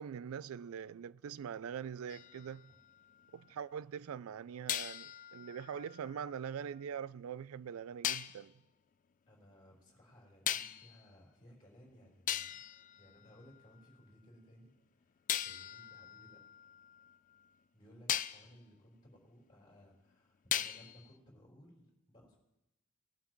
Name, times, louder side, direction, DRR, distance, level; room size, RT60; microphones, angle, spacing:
voice 1, 0.0-2.7 3.3-8.5, right 7 dB, 90° right, 0.4 m, -43 dB
sound 1, 2.1-3.5 4.7-6.8 8.0-8.4 10.5-11.0 11.8-11.9 12.3-13.9 15.3-17.5 18.1-18.5 20.5-21.1, left 11 dB, 40° left, 0.3 m, -40 dB
voice 2, 9.3-12.6 13.0-16.4 17.7-22.4, equal, 25° left, 4.3 m, -60 dB
19.5 x 11.5 x 3.1 m
head